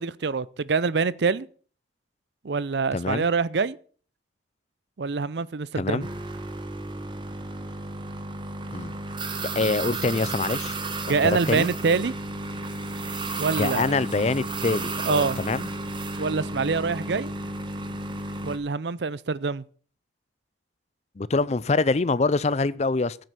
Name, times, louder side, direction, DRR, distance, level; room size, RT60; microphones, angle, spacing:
voice 1, 0.0-1.5 2.4-3.8 5.0-6.1 11.1-12.1 13.4-14.0 15.0-15.4 16.2-17.3 18.4-19.6, right 4 dB, 70° right, 0.6 m, -25 dB
voice 2, 2.9-3.3 5.8-6.1 8.7-8.9 9.5-10.8 11.2-11.7 13.6-15.7 21.2-23.2, left 3 dB, 35° left, 0.5 m, -25 dB
sound 1, 6.0-18.6, right 2 dB, 25° right, 1.3 m, -33 dB
14.5 x 7.8 x 5.8 m
head